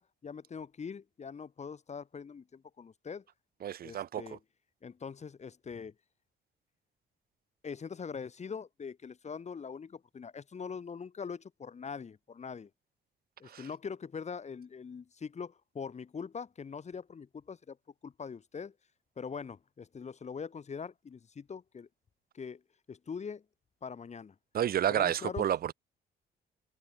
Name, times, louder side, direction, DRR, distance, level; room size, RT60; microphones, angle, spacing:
voice 1, 0.0-3.2 3.8-4.4 4.8-5.9 7.6-12.7 13.4-17.8 18.0-18.7 19.2-21.9 22.3-22.6 22.9-23.4 23.8-24.3 24.9-25.5, left 6 dB, 35° left, 1.2 m, -42 dB
voice 2, 3.6-4.4 13.5-13.6 24.5-25.7, right 10 dB, 50° right, 0.5 m, -30 dB
cardioid pair, 90°, 20 cm